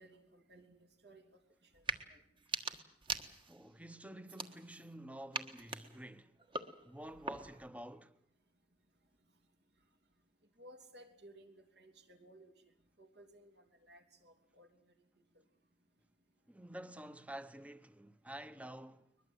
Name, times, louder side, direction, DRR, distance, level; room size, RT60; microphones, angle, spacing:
voice 1, 0.0-1.4 1.7-1.8 2.1-2.2 10.6-12.5 13.0-14.7, right 1 dB, 70° right, 3.2 m, -59 dB
sound 1, 1.7-2.0 2.4-3.7 4.2-4.9 5.3-7.7, right 4 dB, 30° right, 1.5 m, -42 dB
voice 2, 3.5-6.3 6.8-8.1 16.5-19.1, right 1 dB, 10° right, 1.0 m, -49 dB
22.0 x 21.5 x 8.0 m
head